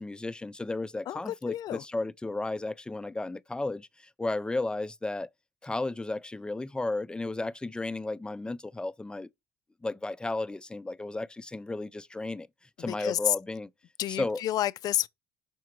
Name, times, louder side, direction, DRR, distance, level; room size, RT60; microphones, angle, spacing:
voice 1, 0.0-5.3 5.6-9.3 9.8-12.5 12.8-13.7 14.1-14.4, left 2 dB, 10° left, 0.5 m, -33 dB
voice 2, 1.1-1.8 12.8-13.4 14.0-15.1, left 12 dB, 60° left, 0.5 m, -30 dB
6.1 x 4.6 x 4.5 m
hypercardioid pair, 65°, 7 cm